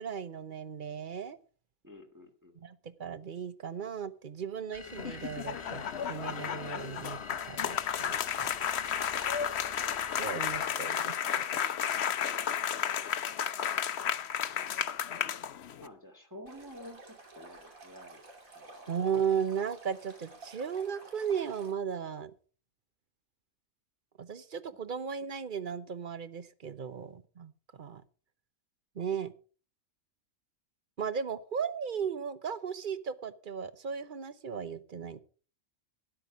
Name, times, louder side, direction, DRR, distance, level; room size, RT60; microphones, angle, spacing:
voice 1, 0.0-1.4 2.6-7.2 7.5-8.5 10.2-11.6 18.9-22.3 24.2-28.0 29.0-29.3 31.0-35.2, right 7 dB, 45° right, 13 dB, 0.9 m, -36 dB
voice 2, 1.8-2.6 12.2-13.0 15.8-18.2 18.5-19.1, equal, 15° right, 3 dB, 1.9 m, -51 dB
sound 1, 4.7-10.9, left 3 dB, 25° left, 0.9 m, -48 dB
sound 2, 4.9-15.9, left 9 dB, 60° left, 0.9 m, -33 dB
Stream, 16.5-21.7, right 2 dB, 80° right, 3.2 m, -52 dB
12.5 x 10.0 x 5.0 m, 0.40 s
omnidirectional pair, 1.4 m